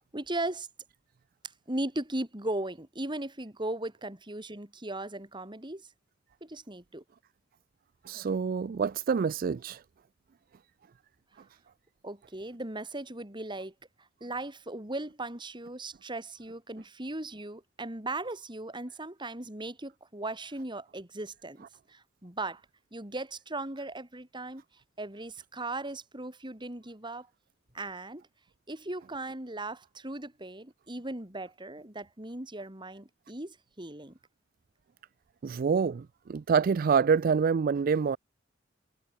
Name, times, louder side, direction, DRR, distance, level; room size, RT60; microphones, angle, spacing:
voice 1, 0.1-0.7 1.7-5.9 6.4-7.0 12.0-13.7 14.0-22.6 22.9-24.6 25.0-27.3 27.7-28.2 28.7-34.2, right 2 dB, 25° right, 3.4 m, -38 dB
voice 2, 8.1-9.8 35.4-38.2, right 6 dB, 50° right, 0.4 m, -26 dB
head